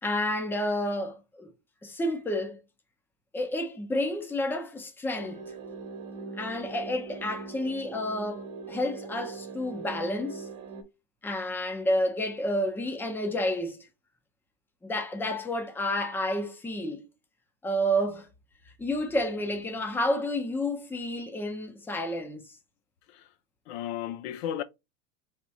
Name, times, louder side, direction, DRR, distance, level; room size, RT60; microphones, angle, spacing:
voice 1, 0.0-1.5 1.8-2.6 3.3-5.4 6.4-10.5 11.2-13.8 14.8-17.1 17.6-18.3 18.8-22.4, left 1 dB, 5° left, 0.6 m, -30 dB
sound 1, 5.1-10.8, right 4 dB, 45° right, 1.2 m, -41 dB
voice 2, 23.7-24.6, left 11 dB, 65° left, 0.6 m, -34 dB
3.5 x 2.5 x 4.1 m
supercardioid pair, 130°, 36 cm